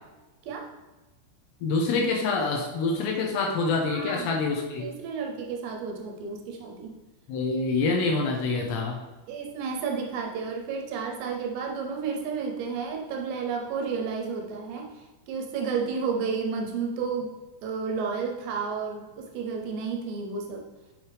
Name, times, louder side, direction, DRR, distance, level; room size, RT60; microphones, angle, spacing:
voice 1, 1.6-4.9 7.3-9.0, left 3 dB, 75° left, 0 dB, 2.7 m, -26 dB
voice 2, 3.8-4.4 4.7-6.9 8.0-8.2 9.3-17.3 17.6-20.7, right 5 dB, 80° right, 2 dB, 2.8 m, -32 dB
7.6 x 7.1 x 3.4 m, 1.1 s
omnidirectional pair, 5.4 m